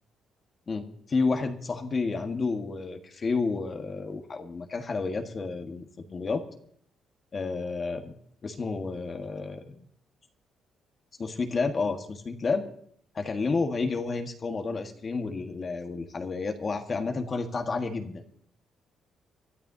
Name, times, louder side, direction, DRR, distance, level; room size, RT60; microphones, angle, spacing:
voice 1, 0.7-6.4 7.3-8.0 8.4-9.8 11.2-12.7 13.2-18.2, left 4 dB, 40° left, 5 dB, 1.6 m, -30 dB
24.0 x 12.5 x 2.9 m, 0.63 s
cardioid pair, 90°, 0 cm